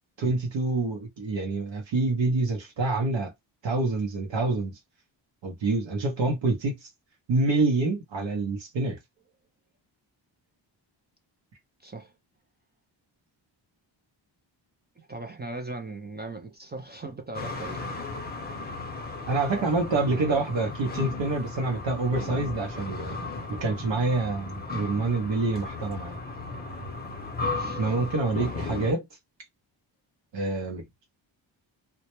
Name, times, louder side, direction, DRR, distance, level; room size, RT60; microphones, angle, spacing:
voice 1, 0.2-3.3 3.6-4.8 5.4-6.9 7.3-9.0 19.3-23.2 23.5-26.2 27.8-29.1 30.3-30.9, right 3 dB, 65° right, 0.8 m, -27 dB
voice 2, 11.8-12.1 15.0-18.0 19.5-19.7 20.1-20.5 26.3-26.4 27.5-28.0, right 2 dB, 25° right, 0.4 m, -39 dB
sound 1, 17.3-28.9, left 3 dB, 20° left, 0.6 m, -35 dB
2.2 x 2.1 x 2.8 m
wide cardioid pair, 105°, 47 cm